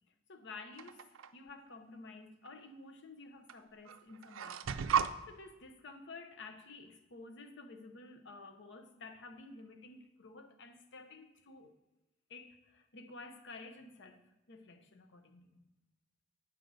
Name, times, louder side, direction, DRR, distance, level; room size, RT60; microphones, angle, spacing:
voice 1, 0.3-4.6 5.3-11.7 12.3-15.6, left 3 dB, 65° left, 0.8 m, -52 dB
sound 1, 0.8-1.3 2.5-2.6 3.5-3.6 3.9-5.1, right 7 dB, 75° right, 0.4 m, -34 dB
8.9 x 6.2 x 4.0 m
head